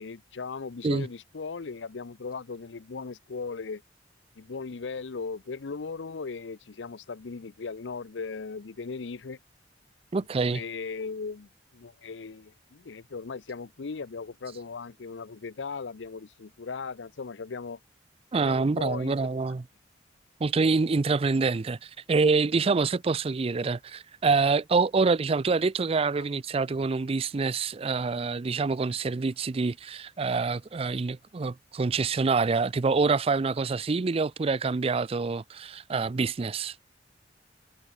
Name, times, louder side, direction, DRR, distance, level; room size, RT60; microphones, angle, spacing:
voice 1, 0.0-3.8 4.4-9.4 10.3-17.8 18.4-19.3 26.2-26.3, left 4 dB, 85° left, 0.6 m, -38 dB
voice 2, 10.1-10.6 18.3-19.6 20.4-36.7, right 4 dB, 35° right, 0.4 m, -26 dB
head